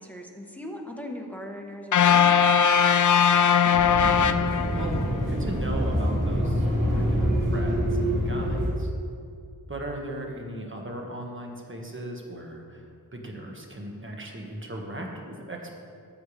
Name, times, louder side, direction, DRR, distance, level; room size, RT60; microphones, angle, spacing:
voice 1, 0.0-2.6, left 1 dB, 5° left, 1 dB, 1.2 m, -39 dB
sound 1, 1.9-5.2, left 7 dB, 55° left, 0.4 m, -20 dB
voice 2, 3.6-4.4 4.7-8.9 9.7-15.8, right 1 dB, 30° right, 0 dB, 1.6 m, -37 dB
sound 2, 3.7-8.7, equal, 55° right, 2.8 m, -26 dB
14.5 x 8.0 x 3.4 m, 2.3 s
wide cardioid pair, 75°, 37 cm